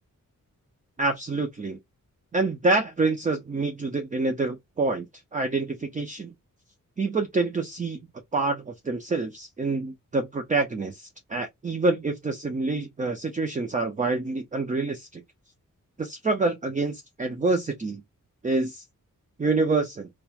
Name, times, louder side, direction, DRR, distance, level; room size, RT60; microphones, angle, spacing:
voice 1, 1.0-1.8 2.3-5.1 5.3-6.3 7.0-8.0 8.3-15.2 16.0-18.0 18.4-18.8 19.4-20.1, right 3 dB, 25° right, 0.5 m, -27 dB
2.9 x 2.2 x 2.3 m
wide cardioid pair, 125°, 33 cm